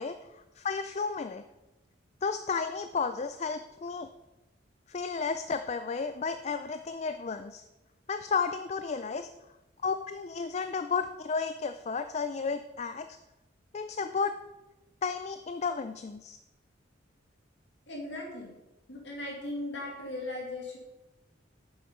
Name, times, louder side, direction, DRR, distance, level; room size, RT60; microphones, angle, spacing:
voice 1, 0.0-1.4 2.2-4.1 4.9-7.6 8.1-9.3 9.8-13.2 13.7-14.3 15.0-16.4, left 5 dB, 35° left, 9 dB, 0.4 m, -33 dB
voice 2, 17.9-18.5 18.9-20.8, left 1 dB, 65° left, -1 dB, 2.3 m, -38 dB
9.6 x 7.1 x 5.5 m, 1.0 s
head